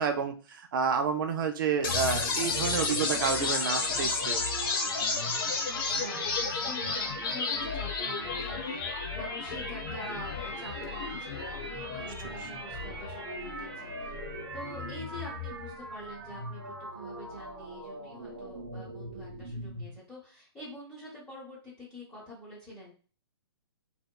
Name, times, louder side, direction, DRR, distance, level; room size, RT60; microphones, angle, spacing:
voice 1, 0.0-4.4 12.2-12.4, right 6 dB, 50° right, 6 dB, 0.4 m, -30 dB
sound 1, 1.8-15.8, left 4 dB, 55° left, 0.6 m, -33 dB
sound 2, 1.8-19.9, right 2 dB, 85° right, 0.8 m, -42 dB
voice 2, 5.7-14.2 14.5-22.9, equal, 10° left, -9 dB, 0.9 m, -46 dB
2.7 x 2.1 x 2.2 m, 0.38 s
hypercardioid pair, 140°, 14 cm